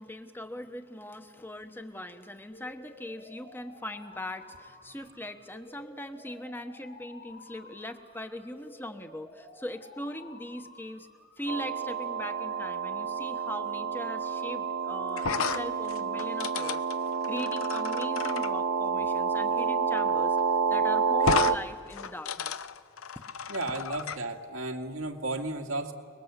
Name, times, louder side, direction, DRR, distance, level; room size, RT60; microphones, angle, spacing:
voice 1, 0.0-11.1 11.4-22.7 23.8-24.0, left 1 dB, 10° left, 8 dB, 1.0 m, -40 dB
sound 1, 2.5-14.5, left 2 dB, 50° left, 3.6 m, -52 dB
sound 2, 11.5-21.6, right 6 dB, 60° right, 0.6 m, -29 dB
sound 3, 15.2-18.5 20.0-20.1 20.4-20.5 21.2-21.6 21.9-24.2, left 6 dB, 90° left, 0.7 m, -33 dB
voice 2, 23.5-25.9, right 2 dB, 90° right, 2 dB, 2.2 m, -33 dB
29.0 x 21.0 x 8.2 m, 2.3 s
head